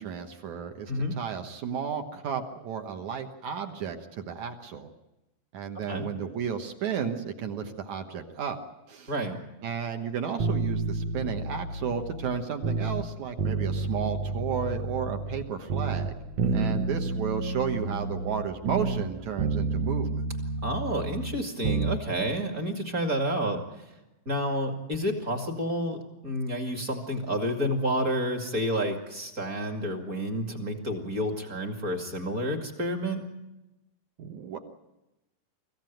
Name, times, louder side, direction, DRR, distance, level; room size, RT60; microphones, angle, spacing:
voice 1, 0.0-4.9 5.5-8.6 8.9-9.1 9.6-16.1 16.5-20.2 34.2-34.6, right 7 dB, 60° right, 6 dB, 2.1 m, -33 dB
voice 2, 0.9-1.2 5.9-6.1 9.1-9.4 16.4-16.8 20.6-23.9 24.3-33.3, equal, 30° right, 3 dB, 1.9 m, -30 dB
sound 1, 10.4-13.1 13.4-15.4 15.7-19.1 19.4-22.0 22.3-22.4, right 4 dB, 75° right, 1.5 m, -30 dB
24.5 x 15.5 x 9.2 m, 0.99 s
omnidirectional pair, 4.6 m